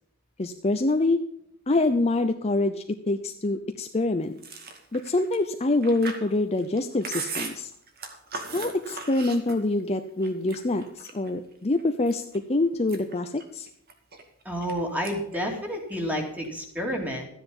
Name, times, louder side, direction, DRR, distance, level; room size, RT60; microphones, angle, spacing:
voice 1, 0.4-1.2 1.7-4.4 4.9-7.7 8.5-12.2 12.5-13.7, left 2 dB, 30° left, 7 dB, 0.6 m, -25 dB
Chewing mastication, 4.4-9.9 10.2-11.3 11.8-12.4 12.7-14.7 15.0-15.4 15.6-16.5, right 4 dB, 45° right, 2.1 m, -38 dB
voice 2, 14.4-17.3, equal, 5° right, 2 dB, 2.6 m, -30 dB
13.5 x 9.8 x 5.4 m, 0.73 s
head